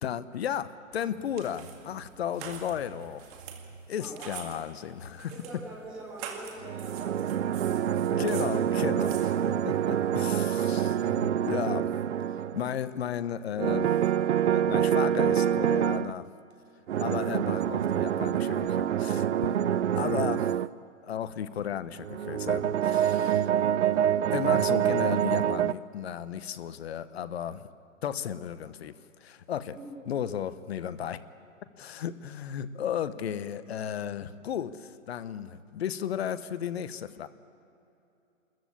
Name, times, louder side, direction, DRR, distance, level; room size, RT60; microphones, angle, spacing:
voice 1, 0.0-3.3 3.9-5.3 8.1-11.9 12.5-13.9 14.4-16.3 17.0-19.6 19.9-20.5 21.0-23.5 24.3-27.6 28.0-29.8 30.1-31.2 31.8-37.3, left 9 dB, 50° left, 14 dB, 1.0 m, -34 dB
sound 1, 0.9-10.1, right 8 dB, 30° right, 2.1 m, -46 dB
voice 2, 4.0-4.5 5.3-7.6 29.7-29.9, right 2 dB, 5° right, -6 dB, 0.4 m, -43 dB
sound 2, 6.6-12.8 13.6-16.1 16.9-20.7 22.0-25.7, right 10 dB, 60° right, 0.6 m, -26 dB
26.5 x 14.0 x 8.6 m, 2.8 s
hypercardioid pair, 150°, 40 cm